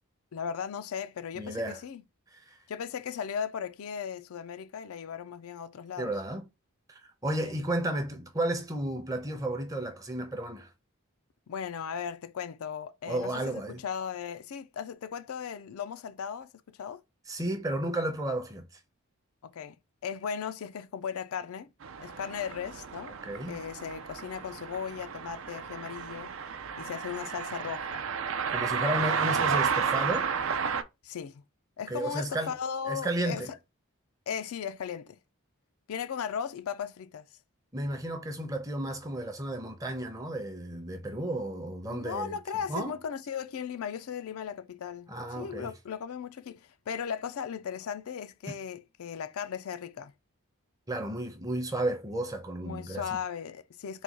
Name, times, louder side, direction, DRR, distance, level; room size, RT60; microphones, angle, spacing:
voice 1, 0.3-2.0 2.7-6.1 7.4-7.6 11.5-17.0 19.4-19.8 20.0-21.7 22.0-23.1 23.5-26.3 26.8-28.0 28.7-29.1 31.0-31.4 31.8-33.4 34.3-35.2 35.9-37.3 41.9-45.1 45.4-50.1 52.6-54.0, left 7 dB, 80° left, 0.4 m, -37 dB
voice 2, 1.4-1.8 2.5-2.6 6.0-6.4 6.9-10.7 13.1-13.8 17.3-18.6 23.2-23.6 28.5-30.3 31.9-32.5 32.9-33.5 37.7-42.4 42.7-43.0 45.1-45.7 50.9-53.0, right 1 dB, 15° right, 0.6 m, -33 dB
sound 1, 21.8-30.8, right 6 dB, 65° right, 0.5 m, -32 dB
4.0 x 2.3 x 4.6 m
head